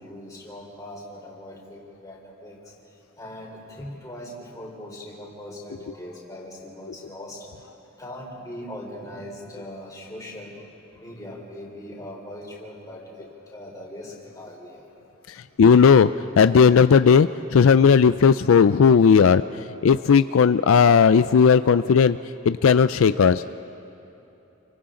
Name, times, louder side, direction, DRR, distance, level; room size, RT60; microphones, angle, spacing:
voice 1, 0.0-7.7 8.0-14.9, left 1 dB, 15° left, -3 dB, 3.9 m, -40 dB
voice 2, 15.6-16.1 16.4-19.4 19.8-22.2 22.5-23.4, left 6 dB, 75° left, 13 dB, 0.4 m, -16 dB
29.0 x 24.5 x 3.8 m, 3.0 s
head